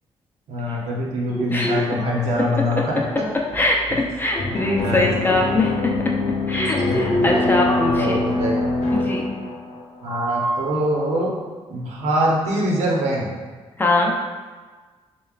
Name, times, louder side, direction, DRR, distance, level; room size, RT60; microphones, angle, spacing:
voice 1, 0.5-3.3 4.8-5.1 6.8-7.5 7.8-8.7 10.0-11.3 11.7-13.3, right 1 dB, 90° right, -2 dB, 0.9 m, -24 dB
sound 1, 1.3-3.0 3.4-4.3 4.8-4.9 5.5-5.7 6.4-8.9 10.1-10.6, left 1 dB, 35° left, 1.2 m, -27 dB
voice 2, 1.5-1.8 3.5-3.9 4.2-5.9 6.5-8.2 8.9-9.3 13.8-14.1, left 2 dB, 20° left, -1 dB, 0.6 m, -22 dB
sound 2, 4.4-10.1, left 2 dB, 70° left, 0.8 m, -24 dB
6.9 x 2.3 x 2.4 m, 1.4 s
cardioid pair, 115°, 11 cm